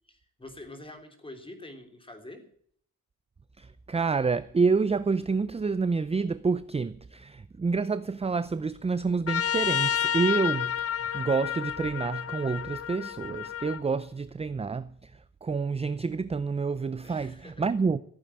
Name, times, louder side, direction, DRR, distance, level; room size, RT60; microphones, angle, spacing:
voice 1, 0.1-2.5 17.0-17.7, left 1 dB, 15° left, 3.5 m, -46 dB
voice 2, 3.6-15.1 15.4-18.0, right 4 dB, 20° right, 0.5 m, -28 dB
Trumpet, 9.3-13.8, left 9 dB, 45° left, 0.7 m, -30 dB
15.0 x 8.9 x 8.8 m
cardioid pair, 120°, 34 cm